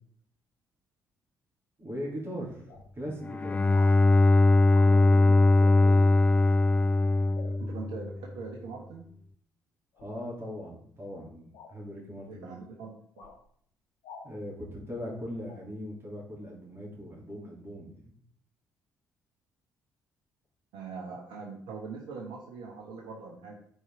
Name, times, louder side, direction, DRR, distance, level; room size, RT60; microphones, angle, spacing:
voice 1, 1.8-3.6 4.8-6.2 10.0-12.6 14.2-18.1, equal, 25° right, -5 dB, 3.2 m, -40 dB
sound 1, 2.0-2.1 2.7-2.9 3.7-3.9 4.7-4.9 7.3-7.5 9.9-10.2 11.5-11.7 13.2-13.4 14.0-14.3 15.5-15.6, left 5 dB, 60° left, 1.8 m, -48 dB
Bowed string instrument, 3.2-8.2, left 2 dB, 15° left, 0.3 m, -21 dB
voice 2, 7.4-9.1 12.3-13.2 20.7-23.6, right 4 dB, 60° right, -1 dB, 1.2 m, -42 dB
9.8 x 4.7 x 3.8 m, 0.64 s
figure-of-eight pair, 45°, 9 cm